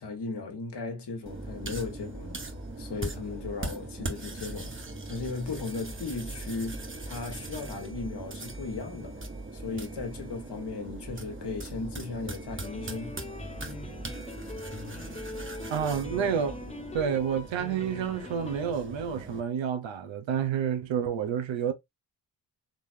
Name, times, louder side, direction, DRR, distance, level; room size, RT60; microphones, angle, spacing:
voice 1, 0.0-2.4 2.8-4.8 5.1-9.2 9.5-13.2, left 4 dB, 55° left, 1.6 m, -36 dB
sound 1, 1.3-19.4, right 2 dB, 25° right, 1.3 m, -40 dB
sound 2, 12.6-18.7, left 3 dB, 15° left, 0.7 m, -43 dB
voice 2, 15.7-16.6 16.9-21.7, right 8 dB, 65° right, 1.0 m, -29 dB
4.0 x 3.1 x 2.6 m
hypercardioid pair, 40°, 48 cm